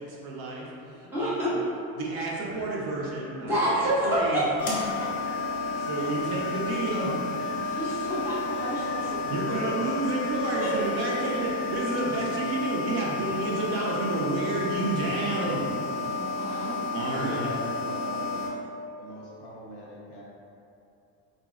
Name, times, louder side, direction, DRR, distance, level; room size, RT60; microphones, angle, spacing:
voice 1, 0.0-1.6 2.0-4.4 5.8-7.1 7.6-7.7 8.8-15.6 16.3-16.7 16.9-17.5, right 2 dB, 70° right, -4 dB, 0.7 m, -31 dB
voice 2, 1.1-1.5 3.4-5.4 7.5-9.2 10.6-10.7 16.0-16.8, equal, 5° right, -12 dB, 0.8 m, -29 dB
Wind, 2.4-12.4, right 1 dB, 40° right, 0.8 m, -47 dB
sound 1, 4.6-18.5, left 3 dB, 25° left, 0.4 m, -31 dB
voice 3, 17.1-18.4 19.0-20.2, left 1 dB, 55° left, -5 dB, 0.7 m, -40 dB
3.6 x 2.0 x 2.4 m, 2.6 s
cardioid pair, 155°, 37 cm